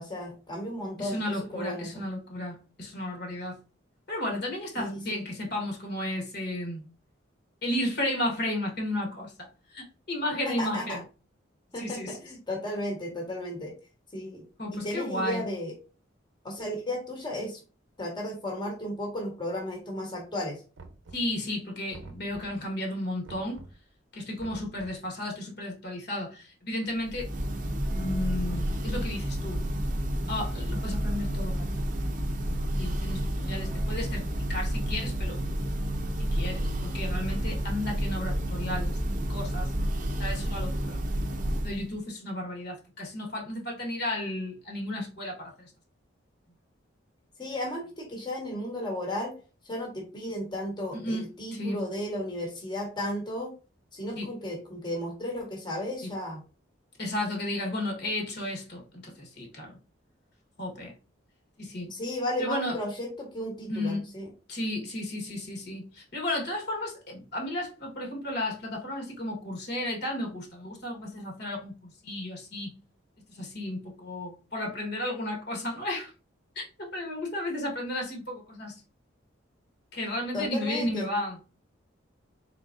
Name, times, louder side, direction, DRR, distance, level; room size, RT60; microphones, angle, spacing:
voice 1, 0.0-1.9 4.7-5.2 10.4-11.0 11.7-13.7 14.1-14.4 14.7-15.7 16.4-17.6 18.0-20.6 47.4-49.3 49.6-53.5 53.9-56.4 61.9-64.3 80.3-81.1, left 1 dB, 25° left, 1.2 m, -34 dB
voice 2, 1.0-3.6 4.1-6.8 7.6-11.0 11.7-12.2 14.6-15.4 21.1-23.6 24.1-27.3 27.8-29.6 30.3-31.6 31.9-32.0 32.7-35.4 36.2-39.0 39.3-39.7 40.2-41.0 41.6-45.7 50.9-51.2 51.5-51.8 54.2-54.3 56.0-56.1 57.0-59.8 60.6-60.9 61.6-61.9 62.4-62.8 63.7-64.0 64.5-72.7 73.3-76.1 76.5-78.8 79.9-81.4, left 1 dB, 60° left, 1.4 m, -33 dB
Knock, 20.8-21.5 21.9-22.7 23.2-23.9 24.4-25.1, right 2 dB, 85° right, 0.7 m, -47 dB
Church bell, 27.0-41.9, equal, 40° right, 0.6 m, -30 dB
3.9 x 3.8 x 2.5 m
head